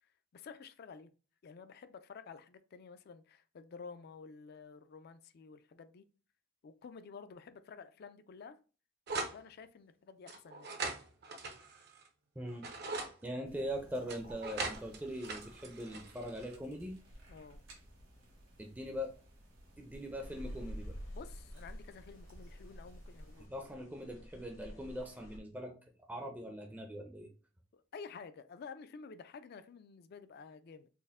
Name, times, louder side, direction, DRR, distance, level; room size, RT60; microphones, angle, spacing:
voice 1, 0.3-1.1 1.4-6.0 6.6-8.6 9.3-10.7 17.3-17.6 21.1-23.5 27.7-30.9, left 5 dB, 50° left, 0.3 m, -51 dB
sound 1, 9.1-9.4 10.3-12.1 12.5-13.1 14.1-16.6, right 3 dB, 55° right, 0.6 m, -41 dB
voice 2, 12.4-12.7 13.2-17.0 18.6-19.1 19.8-20.9 23.4-25.8 26.1-27.3, equal, 10° right, 0.5 m, -41 dB
sound 2, 13.5-23.5, right 1 dB, 75° right, 1.7 m, -58 dB
sound 3, 20.2-25.4, equal, 80° left, 1.1 m, -48 dB
4.3 x 2.1 x 3.5 m
head